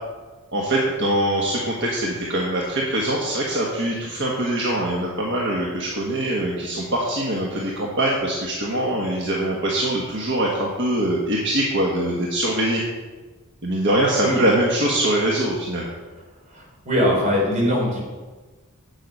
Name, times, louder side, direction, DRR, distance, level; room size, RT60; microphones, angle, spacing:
voice 1, 0.5-12.8 13.6-15.9, right 1 dB, 55° right, -3 dB, 1.3 m, -23 dB
voice 2, 16.5-18.0, equal, 35° right, -3 dB, 3.4 m, -21 dB
9.3 x 7.8 x 5.4 m, 1.3 s
head